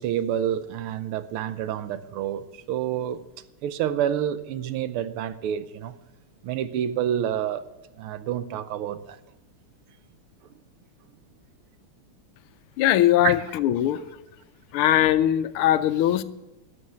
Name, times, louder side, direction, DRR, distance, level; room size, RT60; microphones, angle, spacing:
voice 1, 0.0-3.2 3.6-5.9 6.4-7.6 8.0-9.2 13.2-13.4, right 10 dB, 80° right, 1.6 m, -28 dB
voice 2, 12.8-14.0 14.7-16.2, left 12 dB, 80° left, 1.5 m, -21 dB
13.0 x 6.4 x 9.3 m
omnidirectional pair, 2.4 m